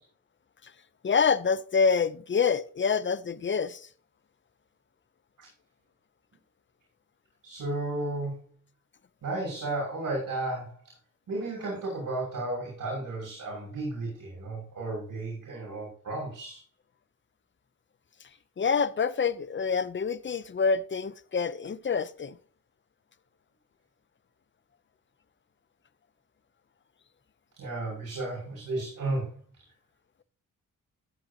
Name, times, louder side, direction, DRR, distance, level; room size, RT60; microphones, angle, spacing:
voice 1, 1.0-3.9 18.6-22.4, left 5 dB, 35° left, 0.7 m, -26 dB
voice 2, 7.4-8.4 9.2-10.8 11.3-16.6 27.6-29.4, right 2 dB, 70° right, 6.1 m, -33 dB
14.5 x 7.7 x 2.9 m
cardioid pair, 60°, 34 cm